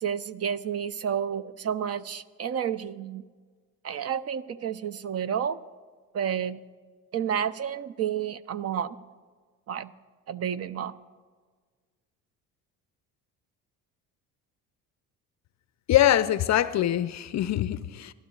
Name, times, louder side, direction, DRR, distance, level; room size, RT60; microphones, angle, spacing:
voice 1, 0.0-3.3 3.8-5.6 6.1-6.6 7.1-9.0 9.7-9.9 10.3-11.0, right 8 dB, 40° right, 0.5 m, -30 dB
voice 2, 15.9-18.1, left 12 dB, 45° left, 0.5 m, -23 dB
29.5 x 12.0 x 2.4 m
hypercardioid pair, 65°, 41 cm